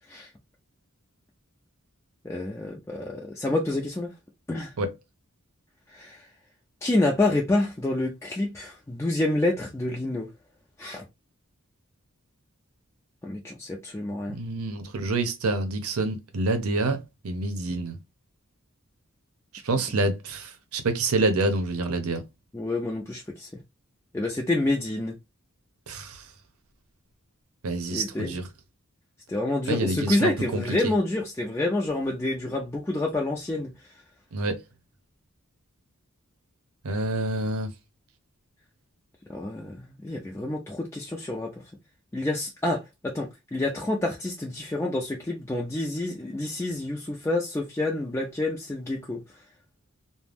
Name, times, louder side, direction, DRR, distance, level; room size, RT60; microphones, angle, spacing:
voice 1, 2.2-4.1 4.5-4.7 5.9-6.2 6.8-10.3 10.8-11.0 13.2-14.4 22.5-23.6 24.1-25.2 27.9-28.3 29.3-33.7 39.3-41.5 42.1-49.2, left 2 dB, 10° left, 0.4 m, -28 dB
voice 2, 14.3-17.9 19.6-22.2 25.9-26.2 27.6-28.4 29.7-30.9 34.3-34.6 36.8-37.7, right 2 dB, 85° right, 0.7 m, -27 dB
2.4 x 2.1 x 3.3 m
head